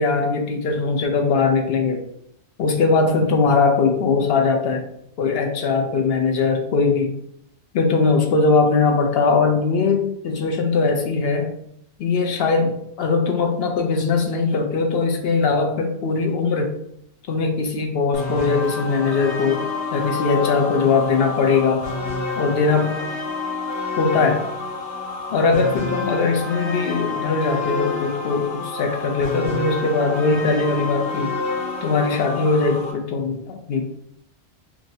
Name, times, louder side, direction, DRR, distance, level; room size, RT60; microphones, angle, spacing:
voice 1, 0.0-2.0 2.6-4.9 5.2-7.1 7.7-11.5 12.0-16.8 17.3-21.9 22.4-23.0 24.0-24.5 25.3-31.4 31.8-33.8, left 4 dB, 65° left, 3 dB, 0.9 m, -20 dB
sound 1, 18.1-32.9, left 3 dB, 85° left, 1.1 m, -28 dB
4.6 x 2.6 x 2.7 m, 0.73 s
omnidirectional pair, 1.1 m